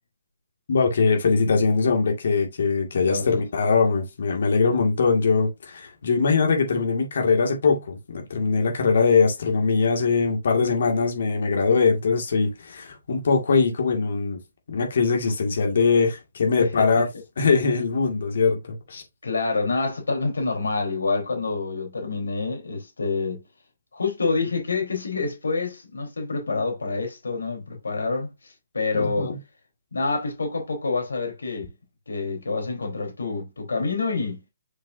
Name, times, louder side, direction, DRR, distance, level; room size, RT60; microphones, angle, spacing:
voice 1, 0.7-14.4 14.7-17.1 17.4-19.0 26.5-26.6 28.9-29.4, left 4 dB, 65° left, 2.1 m, -22 dB
voice 2, 3.0-3.4 16.6-16.9 19.2-23.4 23.9-29.3 29.9-31.7 32.1-34.4, left 3 dB, 90° left, 3.9 m, -27 dB
7.0 x 5.3 x 2.7 m
hypercardioid pair, 155°, 0 cm